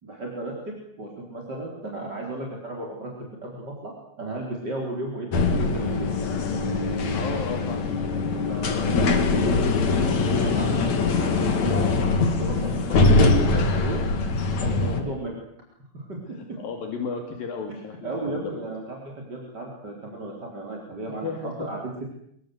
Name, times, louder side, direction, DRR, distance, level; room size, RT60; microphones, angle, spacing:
voice 1, 0.0-3.1 3.4-6.1 8.5-10.9 11.2-14.0 14.6-15.4 15.9-16.2 17.7-17.8 18.0-22.1, right 2 dB, 30° right, -1 dB, 4.5 m, -34 dB
sound 1, 5.3-15.0, left 3 dB, 55° left, 3.5 m, -22 dB
voice 2, 7.1-7.9 14.9-15.2 16.3-18.6 21.1-21.7, left 5 dB, 75° left, 3 dB, 4.2 m, -34 dB
26.5 x 22.5 x 8.0 m, 0.74 s
omnidirectional pair, 4.1 m